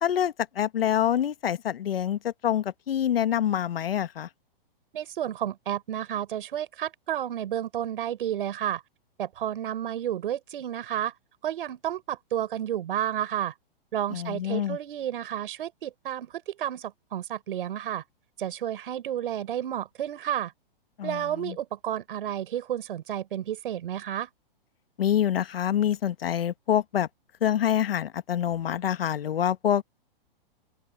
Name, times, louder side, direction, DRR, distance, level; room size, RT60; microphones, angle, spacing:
voice 1, 0.0-4.3 14.1-14.8 21.0-21.6 25.0-27.1 27.4-29.8, left 10 dB, 80° left, 1.3 m, -26 dB
voice 2, 4.9-8.8 9.2-11.1 11.4-13.5 13.9-18.0 18.4-20.5 21.0-24.3, right 11 dB, 65° right, 5.8 m, -31 dB
open air
hypercardioid pair, 140°, 29 cm